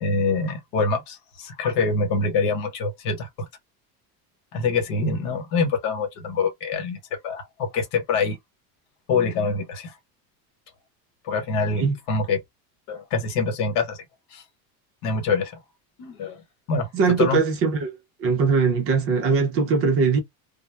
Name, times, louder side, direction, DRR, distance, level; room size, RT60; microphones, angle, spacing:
voice 1, 0.0-3.3 4.5-8.4 9.1-9.9 11.2-12.4 12.9-14.0 14.3-14.4 15.0-15.6 16.0-16.4 16.7-17.4, left 4 dB, 65° left, 1.1 m, -25 dB
voice 2, 16.9-17.9 18.2-20.2, right 5 dB, 35° right, 0.5 m, -21 dB
2.2 x 2.0 x 3.2 m
cardioid pair, 165°, 42 cm